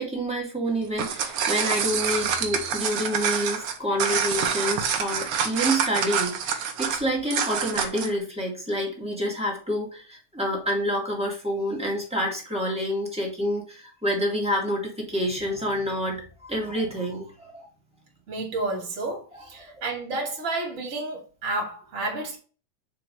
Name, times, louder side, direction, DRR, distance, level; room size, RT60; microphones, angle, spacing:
voice 1, 0.0-17.7 19.7-19.8, equal, 5° right, 1.0 m, -28 dB
sound 1, 0.8-8.2, right 7 dB, 80° right, 1.2 m, -26 dB
voice 2, 18.3-22.4, right 2 dB, 30° right, 2.0 m, -31 dB
4.8 x 4.4 x 5.3 m
omnidirectional pair, 3.8 m